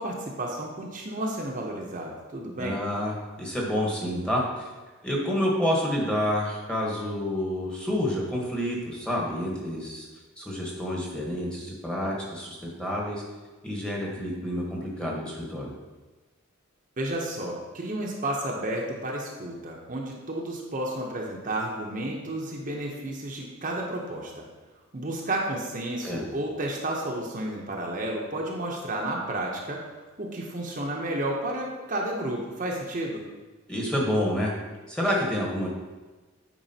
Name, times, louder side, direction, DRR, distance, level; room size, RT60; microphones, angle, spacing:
voice 1, 0.0-2.8 17.0-24.4 24.9-29.8 30.2-33.2, right 1 dB, 40° right, -1 dB, 0.7 m, -32 dB
voice 2, 2.6-4.7 5.0-10.1 10.4-13.2 13.6-15.7 26.0-26.2 33.7-34.5 34.9-35.7, equal, 5° left, -3 dB, 1.0 m, -28 dB
8.9 x 4.7 x 2.7 m, 1.2 s
head